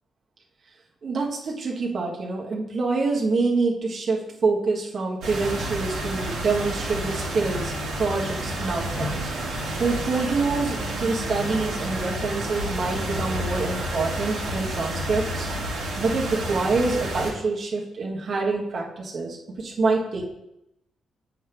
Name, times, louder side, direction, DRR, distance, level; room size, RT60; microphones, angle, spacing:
voice 1, 1.0-9.3 9.8-15.5 16.0-20.3, right 3 dB, 50° right, -2 dB, 1.7 m, -26 dB
sound 1, 5.2-17.3, right 1 dB, 75° right, 2.0 m, -30 dB
7.7 x 3.5 x 6.0 m, 0.84 s
supercardioid pair, 65°, 0 cm